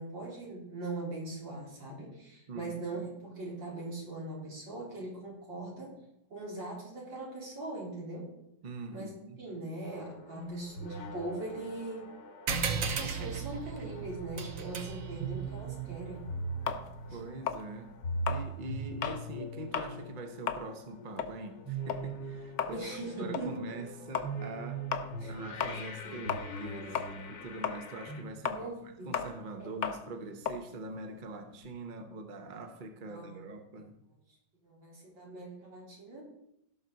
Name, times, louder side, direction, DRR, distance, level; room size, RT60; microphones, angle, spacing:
voice 1, 0.0-6.0 6.3-8.3 8.9-9.1 9.4-12.1 12.8-16.3 17.1-17.2 22.6-23.6 25.2-25.3 26.0-26.3 26.6-27.0 28.5-29.3 29.6-29.7 33.1-33.4 34.6-36.2, right 2 dB, 85° right, -4 dB, 4.4 m, -41 dB
voice 2, 2.5-3.1 8.6-9.4 17.1-18.0 18.3-22.8 23.2-24.8 25.3-27.0 27.3-28.7 29.0-34.0, right 2 dB, 35° right, 6 dB, 0.9 m, -43 dB
sound 1, 9.9-28.2, right 2 dB, 80° left, 2.1 m, -42 dB
sound 2, 12.5-17.4, right 6 dB, 55° right, 1.1 m, -37 dB
sound 3, 16.7-19.3 19.6-20.0 20.3-26.7 26.9-31.7, left 7 dB, 55° left, 0.9 m, -36 dB
16.5 x 6.2 x 4.0 m, 0.80 s
omnidirectional pair, 1.9 m